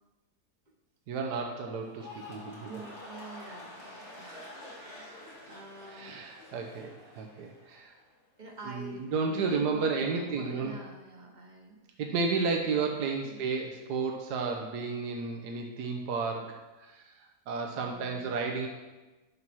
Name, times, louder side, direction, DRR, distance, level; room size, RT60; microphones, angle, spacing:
voice 1, 1.1-2.8 3.9-4.1 4.7-4.8 5.9-7.9 8.6-10.8 12.0-18.7, right 4 dB, 85° right, 2 dB, 1.4 m, -32 dB
sound 1, 1.8-8.1 8.4-8.9, left 2 dB, 75° left, 3.0 m, -48 dB
voice 2, 2.6-6.2 8.4-11.8 13.2-13.5 17.7-18.3, right 2 dB, 35° right, 2 dB, 1.0 m, -47 dB
7.5 x 5.6 x 6.1 m, 1.2 s
omnidirectional pair, 1.7 m